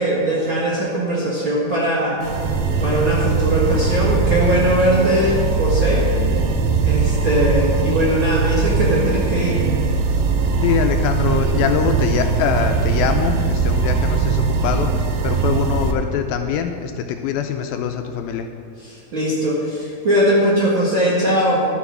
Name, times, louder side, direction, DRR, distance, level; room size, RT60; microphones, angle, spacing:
voice 1, 0.0-2.2 2.8-6.1 6.8-9.7 18.8-21.7, right 1 dB, 45° right, -6 dB, 1.7 m, -20 dB
sound 1, 2.2-15.9, right 4 dB, 70° right, 2.2 m, -20 dB
voice 2, 10.6-18.5, left 8 dB, 80° left, 5 dB, 2.3 m, -23 dB
12.0 x 7.9 x 6.0 m, 2.5 s
omnidirectional pair, 4.5 m